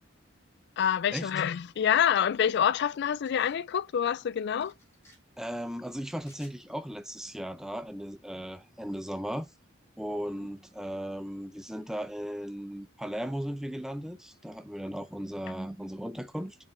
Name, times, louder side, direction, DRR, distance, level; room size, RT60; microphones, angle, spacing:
voice 1, 0.8-4.7, left 8 dB, 55° left, 0.3 m, -26 dB
sound 1, 3.1-3.6 4.6-5.2 6.2-6.6, left 1 dB, 15° left, 4.2 m, -59 dB
voice 2, 5.4-9.5 10.0-16.6, equal, 5° right, 0.6 m, -36 dB
6.8 x 5.7 x 3.3 m
head